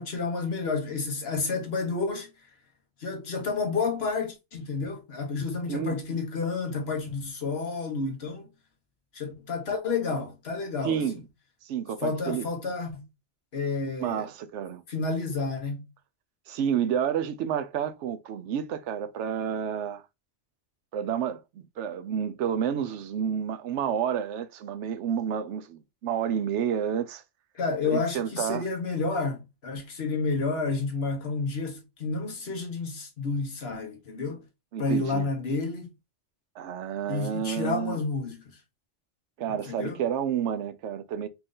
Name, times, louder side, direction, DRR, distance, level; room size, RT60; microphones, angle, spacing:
voice 1, 0.0-2.3 3.0-8.5 9.1-11.0 12.0-13.0 13.5-14.3 14.9-15.8 27.5-34.4 34.8-35.9 37.1-38.4 39.7-40.0, left 4 dB, 60° left, 1.4 m, -30 dB
voice 2, 10.8-11.2 11.6-12.5 14.0-14.8 16.5-20.0 20.9-27.2 27.8-28.6 34.7-35.3 36.6-38.0 39.4-41.3, right 8 dB, 80° right, 0.9 m, -30 dB
4.4 x 2.5 x 3.8 m
omnidirectional pair, 1.2 m